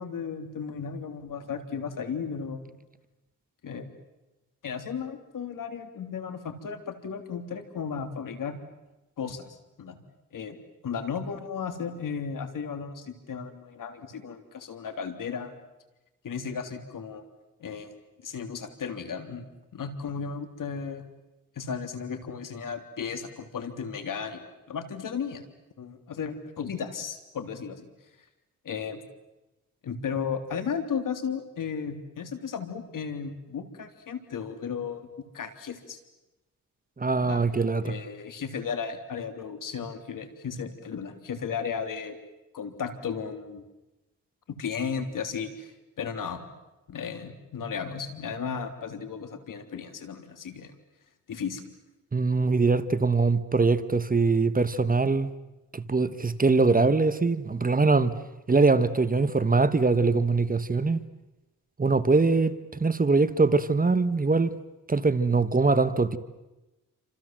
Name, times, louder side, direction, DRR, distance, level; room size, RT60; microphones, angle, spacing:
voice 1, 0.0-2.7 3.6-3.9 4.6-8.6 9.2-9.5 9.8-10.0 10.3-10.6 10.8-15.5 16.2-17.2 17.6-17.9 18.2-19.5 19.7-21.0 21.6-25.5 25.8-27.9 28.7-29.0 29.8-35.1 35.3-36.0 37.2-37.4 37.9-42.2 42.5-43.6 44.6-46.4 46.9-50.7 51.3-51.6, left 6 dB, 70° left, 3.5 m, -35 dB
voice 2, 37.0-38.0 52.1-55.3 55.7-58.1 58.5-61.0 61.8-62.5 62.8-64.5 64.9-66.2, right 3 dB, 25° right, 1.4 m, -22 dB
29.0 x 26.5 x 7.7 m
cardioid pair, 90°, 33 cm